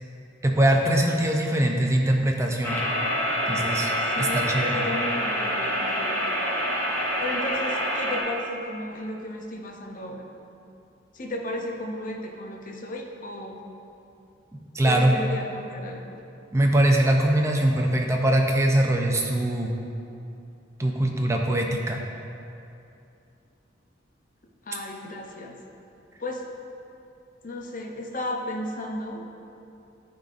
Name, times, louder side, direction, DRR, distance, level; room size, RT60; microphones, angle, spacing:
voice 1, 0.4-2.8 3.5-4.8 14.7-15.2 16.5-19.7 20.8-22.0, right 1 dB, 15° right, 1 dB, 0.5 m, -22 dB
sound 1, 2.6-8.2, equal, 10° left, 0.8 m, -26 dB
voice 2, 4.2-6.2 7.2-10.2 11.1-13.6 14.9-16.2 24.6-25.5 26.2-26.5 27.4-29.2, left 1 dB, 45° left, 1 dB, 0.6 m, -34 dB
11.5 x 3.9 x 2.5 m, 2.7 s
head